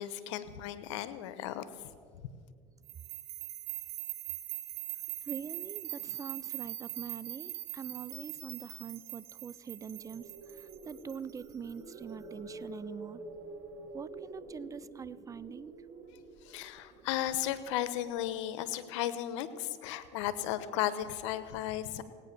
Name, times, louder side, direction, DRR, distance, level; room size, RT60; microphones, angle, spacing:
voice 1, 0.0-1.6 16.4-22.0, left 12 dB, 85° left, 13 dB, 0.9 m, -35 dB
sound 1, 2.9-11.9, right 14 dB, 80° right, 1.6 m, -42 dB
voice 2, 5.3-10.2 10.5-13.2 13.9-15.7, right 6 dB, 20° right, 18 dB, 0.5 m, -44 dB
sound 2, 9.8-17.9, right 2 dB, 45° right, 2.8 m, -48 dB
17.5 x 9.0 x 6.7 m, 2.2 s
supercardioid pair, 95°, 15 cm